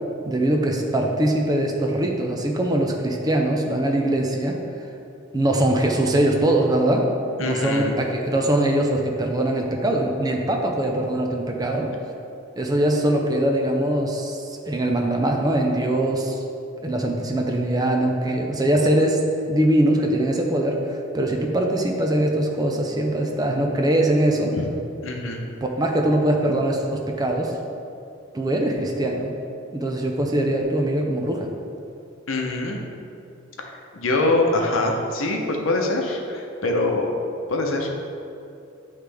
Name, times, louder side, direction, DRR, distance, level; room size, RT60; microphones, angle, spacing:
voice 1, 0.3-4.6 5.3-7.1 7.4-11.9 12.6-16.4 16.8-19.2 19.5-24.5 25.6-27.5 28.3-29.3 29.7-31.5, right 1 dB, 20° right, 1 dB, 0.5 m, -22 dB
voice 2, 7.4-7.9 24.6-24.7 25.0-25.4 32.3-32.8 33.6-37.1 37.5-37.9, left 2 dB, 85° left, 2 dB, 0.8 m, -24 dB
9.3 x 3.2 x 3.4 m, 2.6 s
head